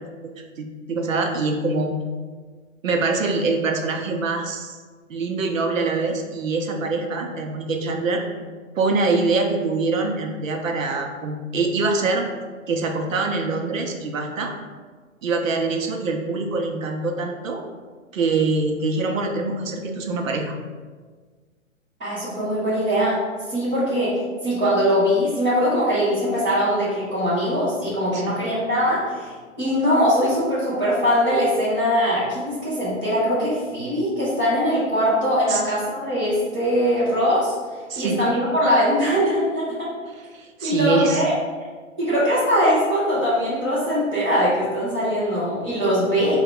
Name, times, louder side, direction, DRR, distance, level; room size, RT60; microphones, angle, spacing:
voice 1, 0.6-1.9 2.8-4.8 5.1-8.2 8.8-12.3 12.7-14.5 15.2-17.6 18.1-20.5 28.1-28.3 35.5-35.6 37.9-38.2 40.3-41.2, right 3 dB, 70° right, 4 dB, 0.8 m, -24 dB
voice 2, 22.0-23.2 23.5-24.1 24.4-29.3 29.6-37.5 38.0-39.9 40.6-41.3 42.0-46.3, equal, 10° right, -15 dB, 0.4 m, -21 dB
4.4 x 2.4 x 3.7 m, 1.5 s
hypercardioid pair, 135°, 41 cm